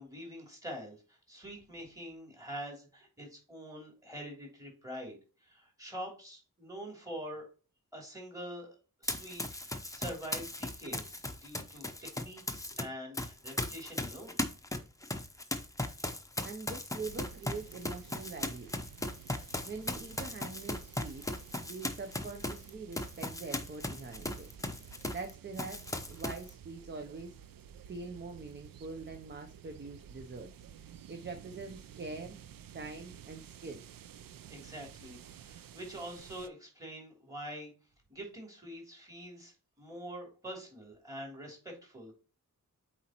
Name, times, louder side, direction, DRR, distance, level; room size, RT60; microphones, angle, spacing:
voice 1, 0.0-7.4 7.9-14.4 34.5-37.7 38.1-42.1, equal, 10° right, -1 dB, 3.0 m, -45 dB
Run, 9.0-12.8 13.1-25.3 25.6-26.5, left 1 dB, 10° left, 0.7 m, -38 dB
voice 2, 16.4-18.7 19.6-21.2 21.6-24.5 25.1-27.4 27.8-30.5 31.1-32.4 32.7-33.8, right 4 dB, 35° right, 5 dB, 0.7 m, -44 dB
sound 1, 17.0-36.5, right 9 dB, 80° right, 0.5 m, -52 dB
8.0 x 4.4 x 2.9 m, 0.35 s
wide cardioid pair, 150°, 33 cm